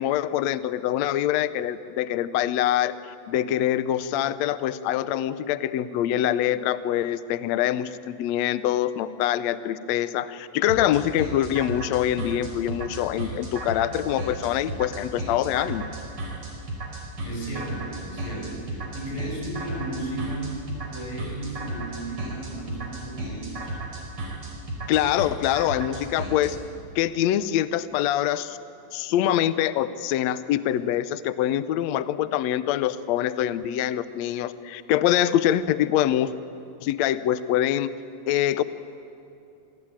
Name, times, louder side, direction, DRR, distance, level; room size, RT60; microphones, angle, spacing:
voice 1, 0.0-3.0 3.3-15.8 24.9-26.6 26.9-28.6 28.9-36.3 36.8-37.9 38.3-38.6, left 12 dB, 80° left, 13 dB, 1.6 m, -24 dB
sound 1, 10.7-26.5, right 2 dB, 40° right, 5.9 m, -34 dB
voice 2, 17.2-20.6 20.9-23.8, right 1 dB, 65° left, -1 dB, 7.9 m, -34 dB
26.5 x 20.5 x 8.9 m, 2.7 s
omnidirectional pair, 4.0 m